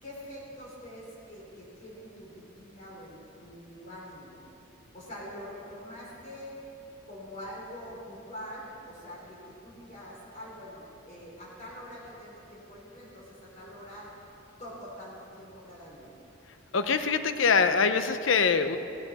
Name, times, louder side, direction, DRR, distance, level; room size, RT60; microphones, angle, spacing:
voice 1, 0.0-4.4 4.9-6.6 7.0-14.1 14.6-16.1, equal, 35° left, -5 dB, 3.1 m, -44 dB
voice 2, 16.7-18.8, left 5 dB, 65° left, 10 dB, 0.7 m, -24 dB
16.5 x 14.0 x 4.1 m, 2.9 s
head